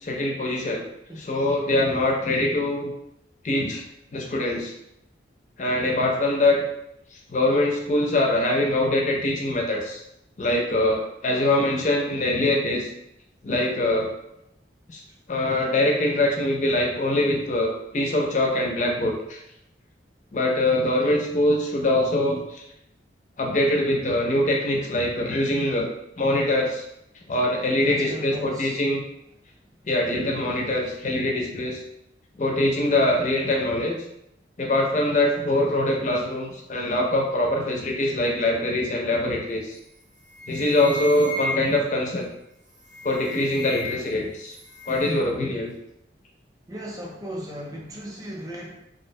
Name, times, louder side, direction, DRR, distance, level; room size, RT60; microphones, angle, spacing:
voice 1, 0.0-0.8 1.2-2.9 3.4-3.8 4.1-4.7 5.6-6.6 7.1-10.0 10.4-12.9 13.4-14.1 14.9-15.0 15.3-19.4 20.3-22.6 23.4-25.9 26.2-26.9 27.3-29.0 29.8-31.8 32.4-34.0 34.6-39.8 40.5-42.3 43.0-44.6 44.9-45.7, left 1 dB, 40° left, 0 dB, 0.4 m, -23 dB
voice 2, 27.8-28.8 46.7-48.7, equal, 20° right, -2 dB, 0.4 m, -36 dB
sound 1, 39.7-40.0 40.3-41.9 42.7-44.2 44.5-45.3, left 2 dB, 45° right, 0.7 m, -35 dB
2.6 x 2.0 x 2.6 m, 0.82 s
head